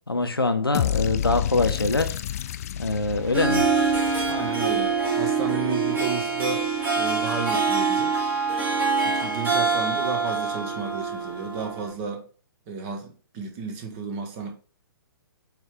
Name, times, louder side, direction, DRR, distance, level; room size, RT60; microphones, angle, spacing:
voice 1, 0.1-2.2 2.8-3.7, left 2 dB, 85° left, 0.9 m, -24 dB
sound 1, 0.7-4.9, left 11 dB, 40° left, 0.4 m, -29 dB
Harp, 3.2-11.9, right 4 dB, 15° right, 1.8 m, -25 dB
voice 2, 4.1-6.7 6.9-8.1 9.0-12.3 12.7-14.5, right 5 dB, 30° right, 1.6 m, -33 dB
8.2 x 3.5 x 3.6 m
figure-of-eight pair, 120°, 12 cm